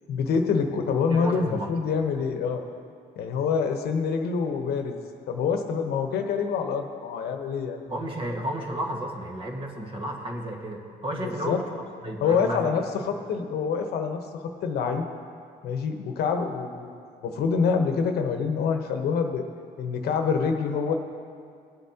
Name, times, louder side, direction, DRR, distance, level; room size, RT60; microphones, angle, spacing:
voice 1, 0.1-2.7 3.2-5.0 5.3-7.8 11.2-11.6 12.2-15.1 15.6-17.0 17.2-19.4 19.8-20.9, left 5 dB, 70° left, 5 dB, 1.0 m, -26 dB
voice 2, 1.1-2.1 7.9-13.1, right 1 dB, 30° right, 0 dB, 1.6 m, -33 dB
19.5 x 7.7 x 2.9 m, 2.3 s
cardioid pair, 110°, 17 cm